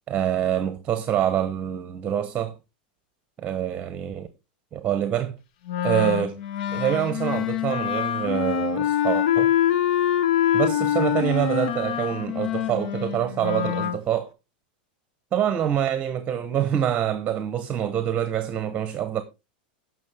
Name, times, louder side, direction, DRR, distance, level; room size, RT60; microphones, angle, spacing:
voice 1, 0.1-2.5 3.4-4.3 4.7-5.3 5.8-6.4 6.7-9.5 10.5-14.3 15.3-19.2, right 10 dB, 25° right, 1.0 m, -26 dB
Wind instrument woodwind instrument, 5.7-14.0, left 10 dB, 65° left, 0.9 m, -25 dB
16.0 x 6.2 x 3.4 m
supercardioid pair, 135°, 5 cm